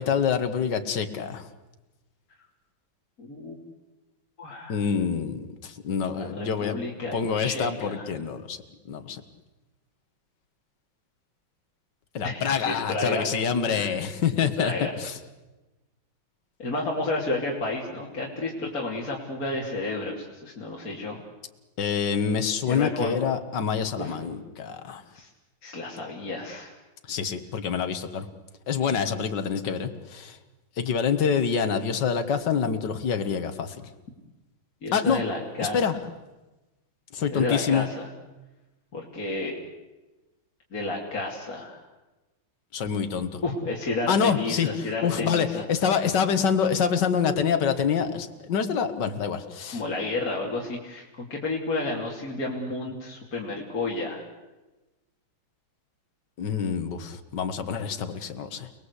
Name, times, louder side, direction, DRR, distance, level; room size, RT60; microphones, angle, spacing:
voice 1, 0.0-1.5 4.7-6.8 7.1-8.6 8.9-9.2 12.1-15.2 21.8-25.0 27.1-28.3 28.7-30.4 30.8-33.8 34.9-35.2 35.6-35.9 37.1-37.9 42.7-43.4 44.1-49.8 56.4-58.7, left 6 dB, 60° left, 8 dB, 2.1 m, -26 dB
voice 2, 3.2-3.6 4.4-4.8 6.2-8.1 12.2-13.2 13.6-13.9 14.6-14.9 16.6-21.2 22.6-23.2 24.0-24.1 25.1-25.3 25.6-26.7 34.8-36.0 37.3-38.1 38.9-39.6 40.7-41.8 43.4-45.6 49.7-54.3, left 2 dB, 45° left, -2 dB, 3.4 m, -31 dB
29.5 x 20.0 x 8.3 m, 1.1 s
omnidirectional pair, 2.2 m